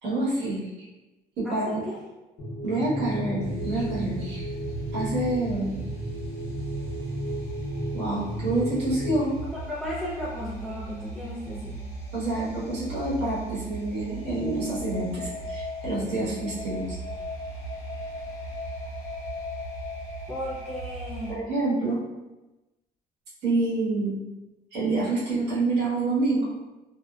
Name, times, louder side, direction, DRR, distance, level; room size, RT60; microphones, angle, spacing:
voice 1, 0.0-0.7 1.4-1.8 2.6-4.5 4.9-5.8 7.9-9.4 12.1-17.0 21.3-22.0 23.4-24.1 24.7-26.5, right 2 dB, 80° right, -7 dB, 1.2 m, -27 dB
voice 2, 1.4-2.0 9.4-11.9 20.3-21.5, left 1 dB, 5° left, -8 dB, 0.4 m, -35 dB
sound 1, 2.4-9.2, right 1 dB, 75° left, 0.7 m, -33 dB
sound 2, 3.4-21.3, right 1 dB, 45° left, 1.0 m, -38 dB
2.6 x 2.2 x 2.3 m, 1.1 s
cardioid pair, 110°, 17 cm